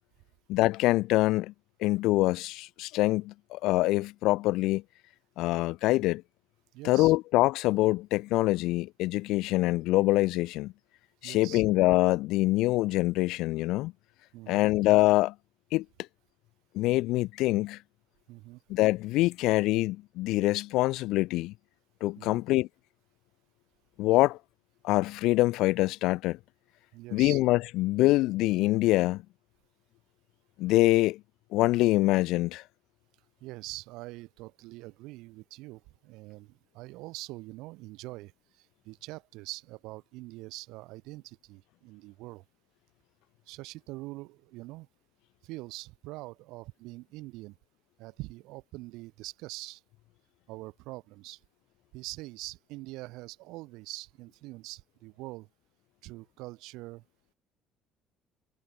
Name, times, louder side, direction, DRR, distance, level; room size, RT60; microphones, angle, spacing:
voice 1, 0.5-1.5 1.8-4.8 5.4-6.2 6.8-10.7 11.2-13.9 14.5-15.3 15.7-15.9 16.7-17.8 18.7-21.5 22.0-22.7 24.0-24.4 24.8-26.4 27.1-29.2 30.6-31.2 31.5-32.6, left 18 dB, 75° left, 0.3 m, -25 dB
voice 2, 6.7-7.1 11.2-11.6 14.3-14.7 18.3-18.6 22.2-22.4 26.9-27.4 33.4-42.4 43.4-44.9 45.4-47.6 48.0-49.8 50.5-51.4 51.9-55.5 56.0-57.0, right 21 dB, 85° right, 3.2 m, -44 dB
cardioid pair, 135°, 0 cm